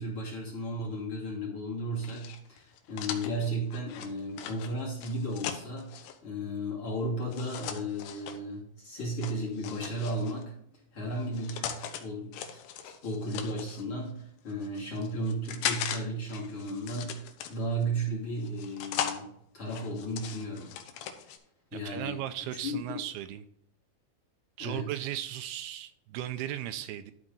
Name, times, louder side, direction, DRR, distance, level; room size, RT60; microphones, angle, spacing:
voice 1, 0.0-10.5 10.9-20.7 21.7-22.2 22.6-23.0 24.6-25.0, right 1 dB, 35° left, 3.1 m, -35 dB
sound 1, 2.0-6.2 7.3-8.4 9.2-10.4 11.1-12.0 12.3-13.8 14.5-16.0 16.3-17.8 18.4-19.2 19.7-21.4, left 9 dB, 90° left, 3.0 m, -38 dB
voice 2, 21.9-23.5 24.6-27.1, right 12 dB, 85° right, 2.4 m, -36 dB
12.0 x 5.2 x 3.9 m
omnidirectional pair, 4.6 m